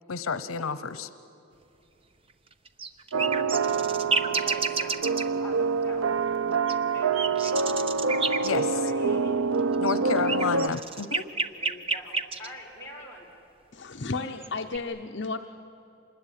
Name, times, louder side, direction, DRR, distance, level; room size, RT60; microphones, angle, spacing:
voice 1, 0.1-1.1 8.4-8.6 9.8-11.3, left 5 dB, 90° left, 14 dB, 0.8 m, -30 dB
sound 1, 2.7-5.2 6.7-8.5 9.7-12.5 14.2-14.8, right 4 dB, 25° right, 0.8 m, -29 dB
sound 2, 3.1-10.7, right 4 dB, 85° right, 0.7 m, -26 dB
voice 2, 4.2-7.9 8.5-10.8 11.5-13.3, left 1 dB, 10° left, -4 dB, 4.7 m, -44 dB
voice 3, 13.7-15.4, left 3 dB, 55° left, 4 dB, 0.8 m, -33 dB
26.5 x 21.0 x 10.0 m, 2.7 s
head